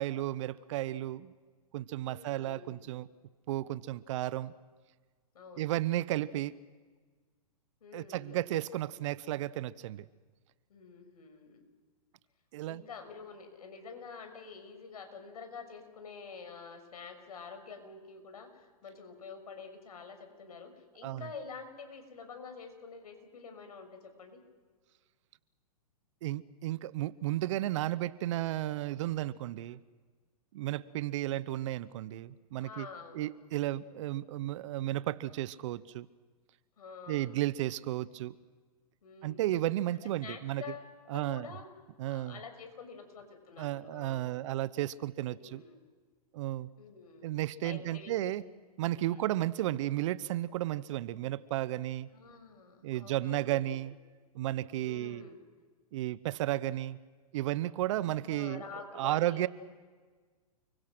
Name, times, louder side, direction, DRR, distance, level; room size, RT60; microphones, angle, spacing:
voice 1, 0.0-1.3 1.7-3.1 3.5-4.5 5.6-6.6 7.9-10.1 12.5-12.8 21.0-21.3 26.2-29.8 30.5-32.9 33.1-36.1 37.1-38.3 39.2-40.6 41.1-41.5 42.0-42.4 43.6-45.6 46.3-46.7 47.2-48.4 48.8-52.1 52.8-54.0 54.3-55.2 55.9-57.0 57.3-58.6 59.0-59.5, right 14 dB, 55° right, 18 dB, 1.0 m, -33 dB
voice 2, 2.1-2.9 5.3-5.7 7.8-8.4 10.7-11.6 12.7-24.4 32.6-33.4 36.8-37.4 39.0-39.7 40.0-41.7 42.0-44.3 45.3-45.8 46.8-47.4 47.6-48.3 48.9-49.3 52.1-53.7 54.8-55.4 58.2-59.5, left 5 dB, 75° left, 7 dB, 6.1 m, -48 dB
30.0 x 23.5 x 6.2 m, 1.4 s
hypercardioid pair, 125°, 20 cm